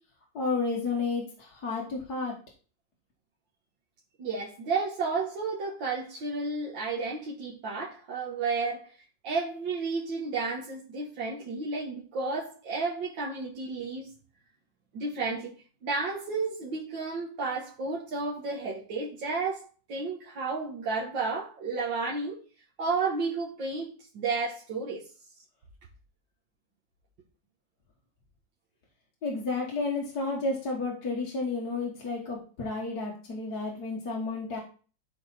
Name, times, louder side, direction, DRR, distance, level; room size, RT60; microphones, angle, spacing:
voice 1, 0.3-2.4 29.2-34.6, left 3 dB, 60° left, 1.9 m, -31 dB
voice 2, 4.2-8.9 9.2-14.1 14.9-15.6 15.8-22.4 22.8-25.0, right 4 dB, 75° right, 2.1 m, -32 dB
12.0 x 4.3 x 4.2 m
omnidirectional pair, 2.0 m